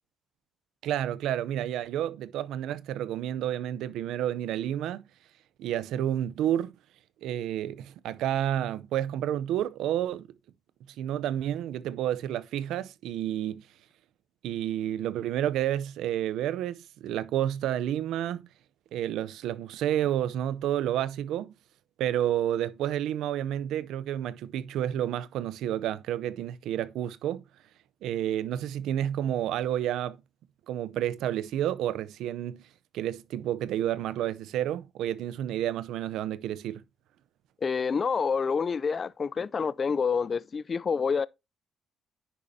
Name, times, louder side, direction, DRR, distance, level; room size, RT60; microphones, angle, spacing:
voice 1, 0.8-5.1 5.6-6.7 7.2-10.3 11.0-13.7 14.4-18.5 18.9-21.5 22.0-27.4 28.0-30.2 30.7-32.7 32.9-36.8, right 11 dB, 85° right, 0.6 m, -30 dB
voice 2, 37.6-41.3, left 5 dB, 40° left, 0.4 m, -27 dB
10.0 x 7.0 x 2.7 m
cardioid pair, 90°, 0 cm